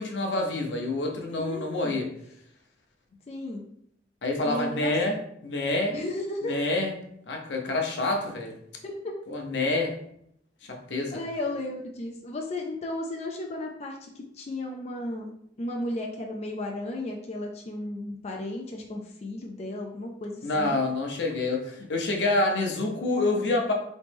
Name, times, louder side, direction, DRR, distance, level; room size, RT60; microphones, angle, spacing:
voice 1, 0.0-2.1 4.2-5.2 5.4-6.0 6.4-6.9 7.3-8.6 9.3-10.0 10.6-11.2 20.4-23.7, left 2 dB, 80° left, 2 dB, 0.7 m, -27 dB
voice 2, 1.3-2.0 3.3-3.6 4.4-5.0 5.9-6.5 8.8-9.1 11.1-15.3 15.6-20.8, left 1 dB, 35° left, 1 dB, 0.4 m, -34 dB
3.1 x 3.0 x 3.3 m, 0.71 s
head